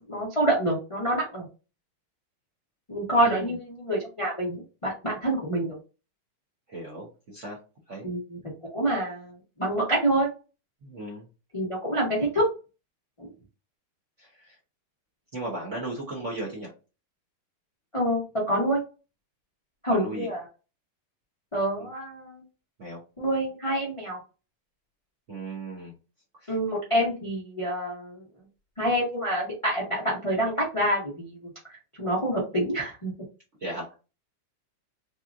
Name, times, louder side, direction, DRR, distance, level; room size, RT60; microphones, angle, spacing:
voice 1, 0.1-1.4 2.9-5.8 8.0-8.2 8.6-9.3 9.6-10.3 11.5-12.5 13.2-13.3 17.9-18.8 19.8-20.4 21.5-22.4 23.2-24.2 26.5-28.2 28.8-31.3 32.0-33.1, right 1 dB, 30° left, -5 dB, 0.6 m, -26 dB
voice 2, 3.2-3.5 6.7-7.6 7.9-8.1 10.8-11.3 14.2-14.6 15.3-16.7 19.9-20.3 21.8-21.9 22.8-23.0 25.3-26.0 26.4-26.5 33.6-33.9, right 2 dB, 50° right, -4 dB, 0.9 m, -36 dB
4.2 x 2.4 x 2.4 m, 0.32 s
omnidirectional pair, 2.4 m